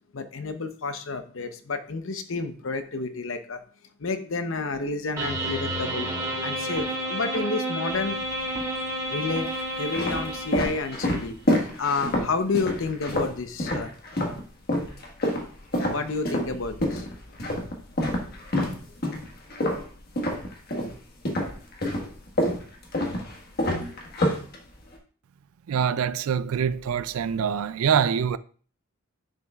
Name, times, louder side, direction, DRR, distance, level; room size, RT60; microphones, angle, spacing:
voice 1, 0.1-3.6 4.0-6.1 6.4-8.2 9.1-13.9 15.9-17.1 18.1-18.3, left 4 dB, 65° left, 0.8 m, -30 dB
sound 1, 5.2-11.0, right 1 dB, 15° right, 2.6 m, -30 dB
sound 2, 7.9-8.6 9.3-14.4 14.7-21.0 21.3-25.0, left 1 dB, 45° left, 1.5 m, -27 dB
voice 2, 25.7-28.4, right 7 dB, 85° right, 0.4 m, -24 dB
10.0 x 6.8 x 2.4 m
head